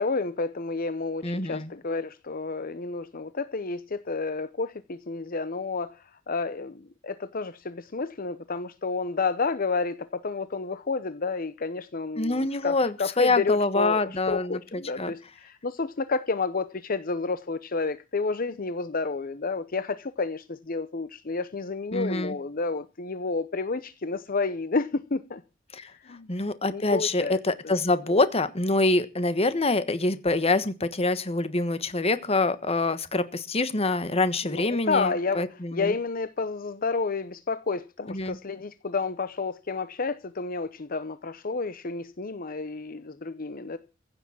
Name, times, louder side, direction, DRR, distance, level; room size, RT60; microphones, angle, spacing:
voice 1, 0.0-6.0 6.3-14.0 14.3-25.4 26.0-26.3 26.7-27.4 27.6-27.7 34.5-35.5 35.7-43.8, left 4 dB, 45° left, 0.8 m, -30 dB
voice 2, 1.2-1.7 12.1-15.1 21.9-22.3 25.7-25.9 26.3-35.9 38.1-38.4, left 2 dB, 30° left, 1.3 m, -26 dB
16.0 x 7.0 x 8.7 m
head